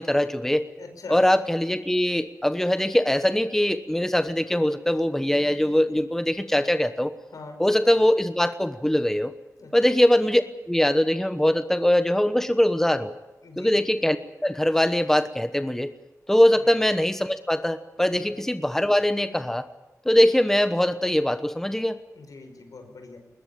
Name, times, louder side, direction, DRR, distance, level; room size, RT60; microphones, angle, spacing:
voice 1, 0.0-0.7 1.1-7.1 7.6-9.3 9.7-13.1 13.6-14.2 14.4-15.9 16.3-19.7 20.0-22.0, left 1 dB, 5° left, 10 dB, 1.1 m, -22 dB
voice 2, 0.8-1.2 7.3-7.6 9.6-9.7 13.4-13.7 16.6-16.7 18.2-18.3 22.1-23.2, left 3 dB, 80° left, 5 dB, 5.4 m, -42 dB
20.5 x 20.5 x 8.7 m, 1.1 s
wide cardioid pair, 80°, 6 cm